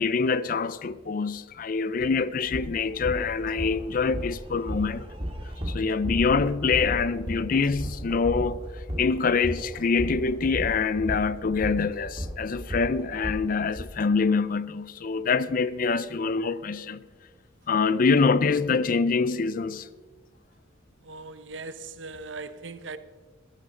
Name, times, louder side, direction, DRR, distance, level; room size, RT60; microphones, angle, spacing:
voice 1, 0.0-5.1 5.7-8.6 9.0-17.0 17.7-19.9, left 4 dB, 45° left, 0.4 m, -25 dB
sound 1, 2.0-2.1 2.5-13.9, equal, 30° right, 1.8 m, -35 dB
voice 2, 21.0-23.0, right 3 dB, 70° right, 0.8 m, -39 dB
16.5 x 12.5 x 4.1 m
head